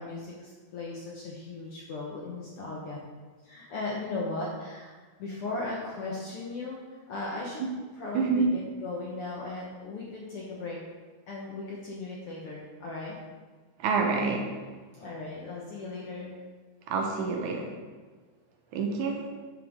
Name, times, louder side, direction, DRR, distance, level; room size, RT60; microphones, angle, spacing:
voice 1, 0.0-3.0 3.4-4.9 5.2-7.6 8.0-10.8 11.3-13.2 14.9-16.4, left 3 dB, 65° left, -4 dB, 1.5 m, -37 dB
voice 2, 8.1-8.5 13.8-14.5 16.9-17.7 18.7-19.3, right 4 dB, 75° right, 2 dB, 2.2 m, -27 dB
11.0 x 5.9 x 3.6 m, 1.4 s
omnidirectional pair, 3.7 m